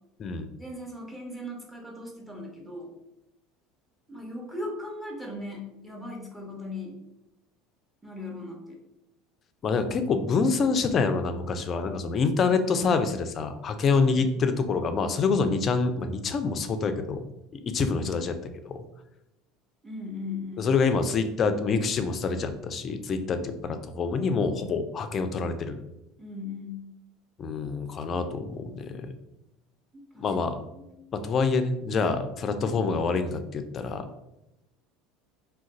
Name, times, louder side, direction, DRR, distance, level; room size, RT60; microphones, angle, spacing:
voice 1, 0.6-2.9 4.1-6.9 8.0-8.8 13.8-14.3 19.8-20.7 26.2-26.9 29.9-30.3 30.7-31.0, left 2 dB, 5° right, -1 dB, 0.9 m, -38 dB
voice 2, 9.6-17.2 17.5-18.4 18.6-18.8 20.6-25.8 27.4-29.1 30.2-30.6 31.1-34.1, left 4 dB, 40° left, 9 dB, 0.4 m, -26 dB
2.4 x 2.2 x 4.0 m, 0.90 s
hypercardioid pair, 90°, 0 cm